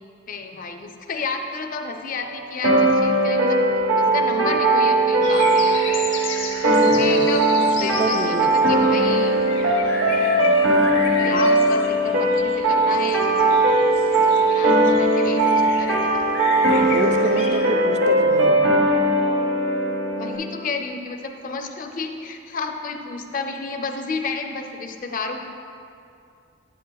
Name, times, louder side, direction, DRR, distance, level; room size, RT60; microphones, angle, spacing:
voice 1, 0.3-3.6 4.0-6.1 6.7-9.4 10.2-10.5 11.2-13.3 14.3-16.3 20.1-25.4, left 4 dB, 45° left, 5 dB, 0.5 m, -31 dB
sound 1, 2.6-20.3, right 1 dB, 85° right, 1.1 m, -19 dB
sound 2, 5.2-17.7, left 4 dB, 80° left, 0.8 m, -33 dB
voice 2, 6.8-7.2 7.8-8.5 11.2-11.5 16.8-18.6, right 2 dB, 40° right, 6 dB, 0.4 m, -29 dB
8.6 x 8.1 x 2.3 m, 2.5 s
head